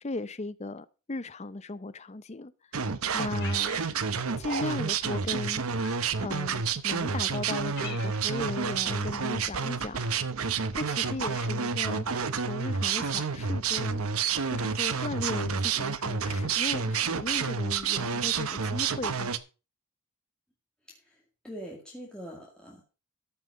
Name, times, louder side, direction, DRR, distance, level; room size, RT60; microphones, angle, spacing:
voice 1, 0.0-2.5 3.1-3.8 4.4-5.9 6.2-10.2 10.7-12.1 12.4-19.3, left 2 dB, 30° left, 0.6 m, -37 dB
sound 1, 2.7-19.4, right 6 dB, 75° right, 0.9 m, -29 dB
Cat, 3.4-4.2 4.5-4.7 5.8-6.3 7.0-7.1 7.4-8.4, left 9 dB, 50° left, 1.5 m, -45 dB
voice 2, 20.9-22.8, equal, 5° left, 2.2 m, -44 dB
13.5 x 5.7 x 6.1 m
head